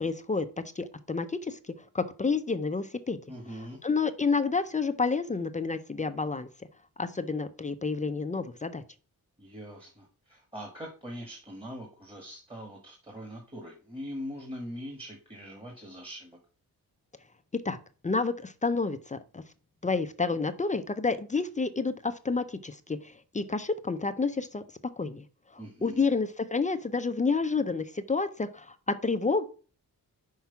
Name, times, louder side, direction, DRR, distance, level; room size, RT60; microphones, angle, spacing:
voice 1, 0.0-3.2 3.8-6.5 7.0-8.8 17.6-17.8 18.0-19.4 19.8-24.6 25.0-25.2 25.5-29.4, left 4 dB, 20° left, 10 dB, 0.5 m, -29 dB
voice 2, 3.3-3.8 9.4-16.4 25.6-26.0, equal, 15° right, 0 dB, 1.5 m, -42 dB
5.9 x 4.6 x 5.7 m, 0.38 s
wide cardioid pair, 120°, 37 cm